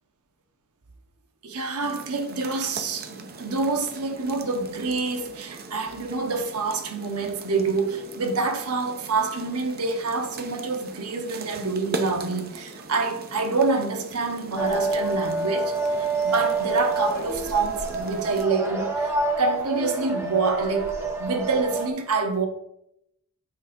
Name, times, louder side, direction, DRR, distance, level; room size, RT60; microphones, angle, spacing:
voice 1, 1.4-19.1 19.4-22.5, right 3 dB, 80° right, 1.1 m, -27 dB
sound 1, 1.8-18.5, right 3 dB, 45° right, 0.8 m, -40 dB
sound 2, 14.6-21.9, right 3 dB, 10° right, 1.2 m, -27 dB
8.6 x 4.1 x 5.1 m
head